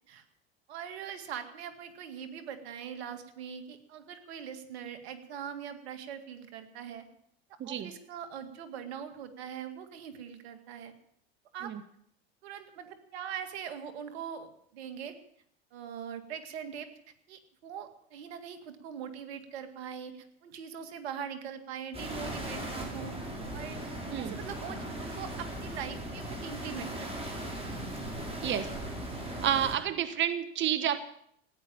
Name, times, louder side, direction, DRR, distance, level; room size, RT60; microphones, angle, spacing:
voice 1, 0.7-7.1 7.6-10.9 11.5-11.7 12.4-15.2 15.7-16.9 17.3-23.2 23.5-23.8 24.2-27.1, right 8 dB, 80° right, 8 dB, 2.1 m, -42 dB
voice 2, 7.6-7.9 11.6-11.8 24.1-24.4 28.4-28.7 29.4-31.0, right 10 dB, 35° right, 12 dB, 1.1 m, -30 dB
sound 1, 21.9-29.7, right 1 dB, 20° right, 5.7 m, -38 dB
15.5 x 10.0 x 8.7 m, 0.70 s
hypercardioid pair, 95°, 32 cm